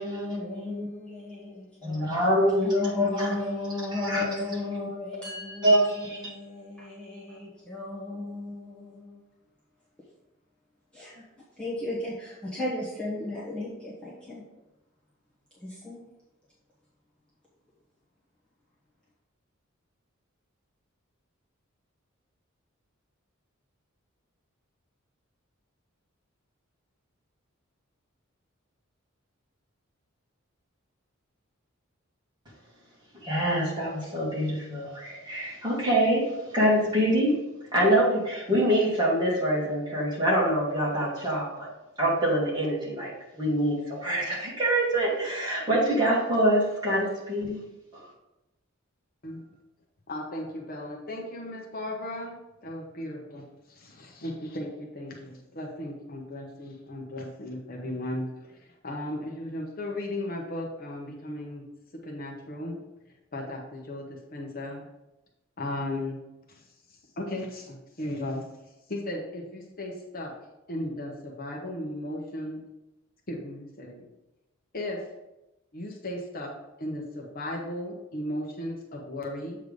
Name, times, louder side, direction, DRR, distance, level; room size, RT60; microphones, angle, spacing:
voice 1, 0.0-2.0 2.6-9.2 10.9-11.2 11.6-14.4 15.6-16.0, left 2 dB, 5° left, -8 dB, 1.3 m, -35 dB
voice 2, 1.8-3.4 4.0-4.2 5.6-6.2 33.2-37.4 37.7-41.7 42.0-47.6, right 1 dB, 20° right, -6 dB, 2.3 m, -25 dB
voice 3, 50.1-52.4 52.6-61.6 62.0-62.8 63.3-64.9 65.6-66.2 66.5-66.6 67.2-68.4 68.9-70.3 70.7-72.6 73.3-74.1 74.7-75.0 75.7-76.5 76.8-79.6, left 1 dB, 45° left, -1 dB, 1.0 m, -36 dB
7.9 x 3.4 x 5.2 m, 0.96 s
head